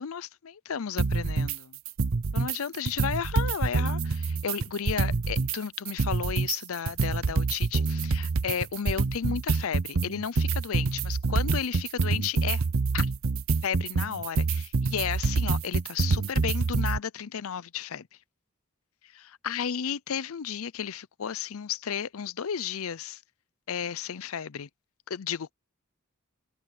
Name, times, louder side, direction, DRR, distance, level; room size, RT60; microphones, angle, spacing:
voice 1, 0.0-1.8 2.3-12.6 12.9-13.1 13.6-18.1 19.1-23.2 23.7-24.7 25.1-25.5, left 7 dB, 75° left, 0.5 m, -33 dB
sound 1, 1.0-1.6 1.9-2.6 2.9-5.6 5.9-17.0, right 4 dB, 65° right, 0.7 m, -26 dB
head